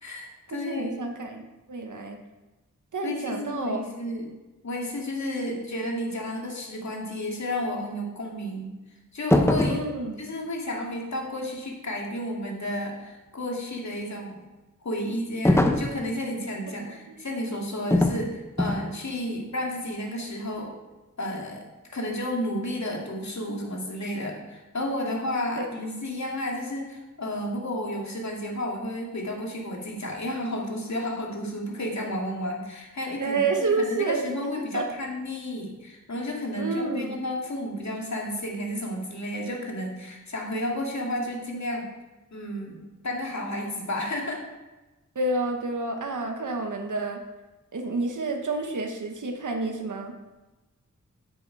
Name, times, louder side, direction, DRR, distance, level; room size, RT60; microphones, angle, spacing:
voice 1, 0.0-1.0 3.0-4.3 4.6-8.7 9.1-9.8 10.2-14.4 14.8-20.8 21.2-21.7 21.9-33.5 33.8-41.9 42.3-42.8 43.0-44.4, left 1 dB, 60° left, -1 dB, 2.5 m, -32 dB
voice 2, 0.7-2.2 2.9-3.8 9.7-10.2 16.8-16.9 25.6-25.7 33.2-34.2 34.7-34.8 36.6-37.2 45.1-47.2 47.7-50.1, right 3 dB, 70° right, 4 dB, 1.3 m, -29 dB
sound 1, 9.3-9.9 15.4-16.0 17.9-18.2 18.6-18.9, left 1 dB, 10° left, 0.8 m, -21 dB
10.0 x 8.2 x 4.7 m, 1.1 s
wide cardioid pair, 95°, 32 cm